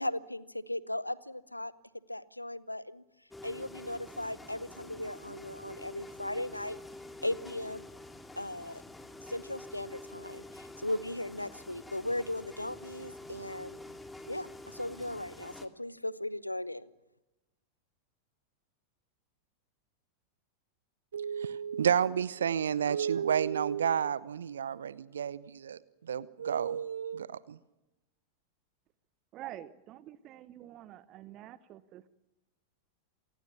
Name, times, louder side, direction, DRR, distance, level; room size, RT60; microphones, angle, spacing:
voice 1, 0.0-1.7 2.1-3.0 3.4-6.8 7.2-7.8 8.4-8.8 9.3-13.8 14.3-16.9, left 1 dB, 85° left, 20 dB, 0.9 m, -37 dB
sound 1, 3.3-15.7, left 2 dB, 10° left, 2.2 m, -48 dB
voice 2, 21.1-25.8 26.1-27.6, right 8 dB, 65° right, 20 dB, 0.7 m, -31 dB
voice 3, 29.3-32.1, right 13 dB, 35° right, 16 dB, 1.0 m, -47 dB
28.0 x 19.0 x 7.0 m, 1.0 s
figure-of-eight pair, 90°, 0 cm